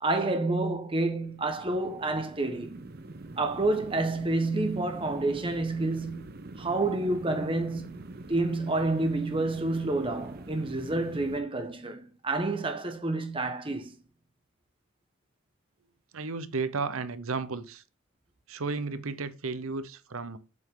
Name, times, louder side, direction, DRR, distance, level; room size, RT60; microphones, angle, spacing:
voice 1, 0.0-2.9 3.4-6.3 6.6-8.0 8.3-13.9, right 2 dB, 25° right, 1.2 m, -29 dB
sound 1, 0.9-11.4, right 2 dB, 45° right, 0.8 m, -45 dB
voice 2, 16.1-17.8 18.5-20.4, right 4 dB, 75° right, 0.8 m, -33 dB
7.7 x 5.6 x 3.7 m
head